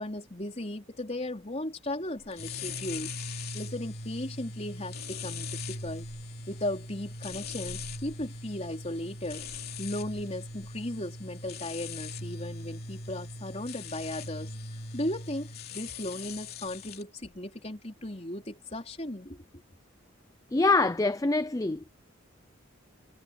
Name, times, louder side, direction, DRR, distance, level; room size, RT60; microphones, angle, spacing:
voice 1, 0.0-3.2 3.5-6.1 6.5-9.4 9.8-14.5 14.9-19.4, left 1 dB, 30° left, 4.0 m, -36 dB
sound 1, 2.3-17.0, left 3 dB, 50° left, 3.1 m, -40 dB
voice 2, 20.5-21.9, left 3 dB, 15° left, 0.5 m, -25 dB
head